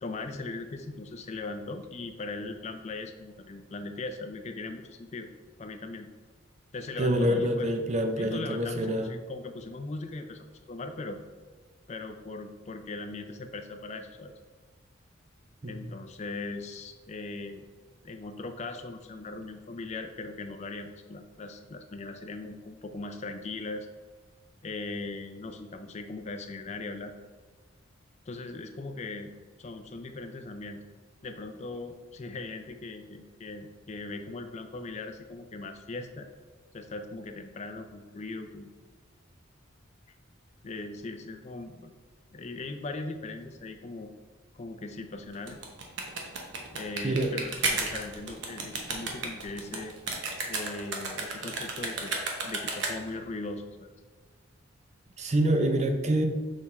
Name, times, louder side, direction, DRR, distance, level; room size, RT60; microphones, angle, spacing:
voice 1, 0.0-5.3 5.6-6.1 6.7-7.7 8.2-11.2 11.9-14.3 15.6-17.6 18.0-23.9 24.6-27.1 28.3-30.8 31.2-36.3 36.7-38.7 40.6-41.9 42.3-44.1 44.5-45.6 46.7-49.9 50.5-52.2 52.4-53.9, left 3 dB, 35° left, 6 dB, 0.4 m, -39 dB
voice 2, 7.0-9.1 15.6-15.9 47.0-47.3 55.2-56.3, right 1 dB, 35° right, 5 dB, 0.6 m, -26 dB
sound 1, 45.3-53.2, right 3 dB, 60° right, 1.0 m, -33 dB
6.4 x 3.6 x 4.2 m, 1.4 s
head